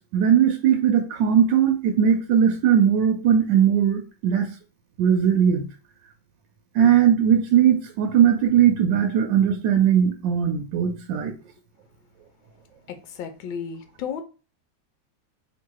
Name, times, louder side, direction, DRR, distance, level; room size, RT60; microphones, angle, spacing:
voice 1, 0.0-4.5 5.0-5.7 6.7-11.3, right 8 dB, 75° right, 5 dB, 1.2 m, -19 dB
voice 2, 13.2-14.2, left 7 dB, 85° left, 7 dB, 1.4 m, -32 dB
3.0 x 2.9 x 4.6 m, 0.33 s
omnidirectional pair, 2.1 m